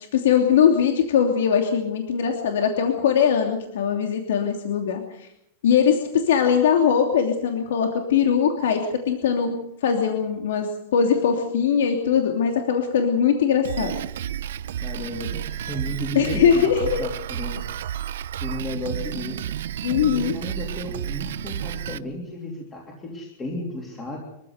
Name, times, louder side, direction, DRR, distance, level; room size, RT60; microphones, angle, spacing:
voice 1, 0.1-5.3 5.6-9.6 9.8-14.0 16.1-17.0 19.8-20.4, left 7 dB, 80° left, 3 dB, 2.9 m, -21 dB
Drum kit, 13.6-22.0, right 10 dB, 75° right, 0.8 m, -31 dB
voice 2, 14.8-17.8 18.4-19.5 19.8-24.2, left 1 dB, 15° left, -1 dB, 3.2 m, -33 dB
24.5 x 15.0 x 8.1 m, 0.80 s
supercardioid pair, 175°, 0 cm